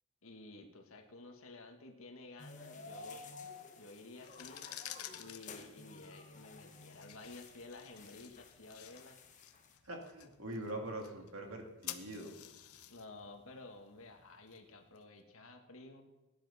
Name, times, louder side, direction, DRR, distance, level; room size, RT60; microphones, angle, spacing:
voice 1, 0.2-3.4 3.8-4.6 5.1-9.2 12.9-16.0, left 2 dB, 70° left, 4 dB, 1.6 m, -53 dB
sound 1, 2.4-9.8, left 3 dB, 35° left, 1.2 m, -53 dB
sound 2, 4.1-15.0, left 11 dB, 85° left, 0.9 m, -52 dB
voice 2, 9.8-12.3, right 1 dB, 70° right, 2 dB, 2.4 m, -43 dB
17.0 x 10.5 x 4.2 m, 1.1 s
head